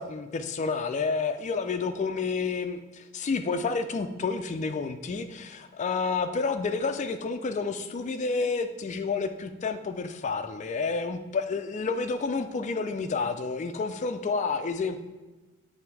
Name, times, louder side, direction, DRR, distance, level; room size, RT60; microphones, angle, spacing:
voice 1, 0.0-15.0, left 4 dB, 35° left, 8 dB, 0.3 m, -30 dB
7.7 x 3.4 x 4.6 m, 1.2 s
head